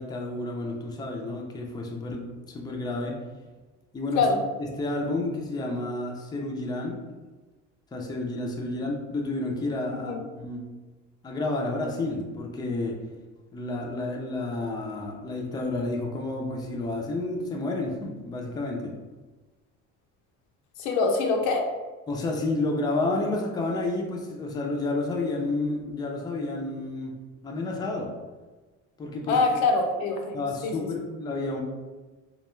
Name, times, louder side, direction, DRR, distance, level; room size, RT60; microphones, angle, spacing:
voice 1, 0.0-3.2 3.9-4.3 4.8-7.0 7.9-10.6 11.2-13.0 13.5-18.9 22.1-27.1 27.4-28.1 29.0-29.4 30.3-31.6, left 2 dB, 15° left, 0 dB, 0.4 m, -30 dB
voice 2, 20.8-21.7 29.3-30.7, left 3 dB, 85° left, 3 dB, 0.5 m, -24 dB
2.3 x 2.2 x 3.0 m, 1.3 s
cardioid pair, 110°, 30 cm